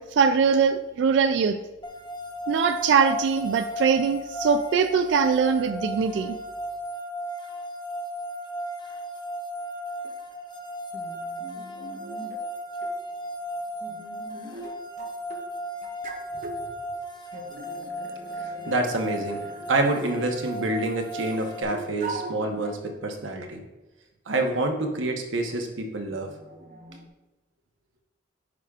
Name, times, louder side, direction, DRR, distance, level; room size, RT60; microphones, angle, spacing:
voice 1, 0.0-1.6 2.5-6.4, right 6 dB, 65° right, 8 dB, 0.3 m, -22 dB
sound 1, 1.8-21.6, equal, 25° left, 0.8 m, -35 dB
sound 2, 10.0-10.1 10.9-12.5 12.8-12.9 13.8-15.4 15.8-16.6 17.3-20.8 21.7-22.8 23.4-23.5 24.4-24.6 26.1-27.1, right 2 dB, 45° right, 0.7 m, -41 dB
voice 2, 18.7-19.4 19.7-23.6 24.3-26.3, right 2 dB, 90° right, 3 dB, 0.9 m, -27 dB
9.9 x 4.9 x 2.4 m, 1.1 s
head